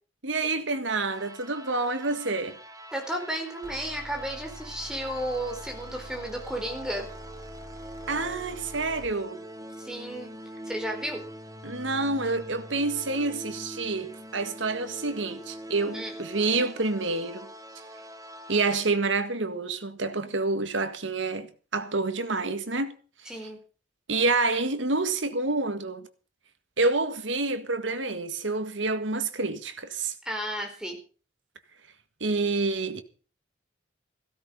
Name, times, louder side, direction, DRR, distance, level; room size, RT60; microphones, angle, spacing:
voice 1, 0.2-2.6 8.1-9.4 11.6-17.5 18.5-23.0 24.1-26.1 26.8-30.1 32.2-33.0, right 3 dB, 80° right, 1.8 m, -28 dB
sound 1, 0.9-18.8, equal, 20° right, 1.4 m, -44 dB
voice 2, 2.9-7.1 9.8-10.3 10.7-11.2 15.9-16.1 20.2-20.3 23.2-23.6 30.2-31.0, right 1 dB, 5° right, 4.6 m, -33 dB
sound 2, 3.6-9.2, right 1 dB, 50° right, 4.8 m, -45 dB
16.0 x 13.5 x 5.4 m
head